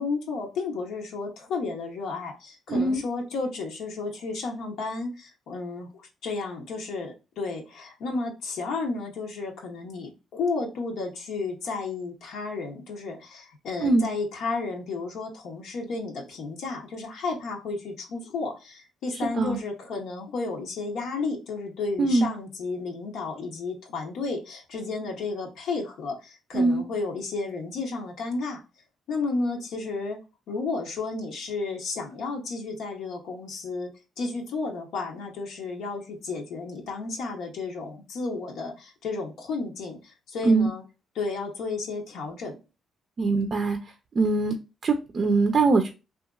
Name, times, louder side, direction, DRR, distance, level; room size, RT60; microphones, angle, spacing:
voice 1, 0.0-28.6 29.1-30.2 30.5-33.9 34.2-40.8 41.2-42.6, left 3 dB, 80° left, 0 dB, 0.8 m, -32 dB
voice 2, 2.7-3.0 13.8-14.1 19.4-19.6 22.0-22.3 26.5-26.8 40.4-40.7 43.2-43.8 44.1-44.5 44.8-45.9, right 3 dB, 45° right, 5 dB, 0.4 m, -22 dB
2.8 x 2.4 x 2.3 m, 0.29 s
cardioid pair, 90°, 0 cm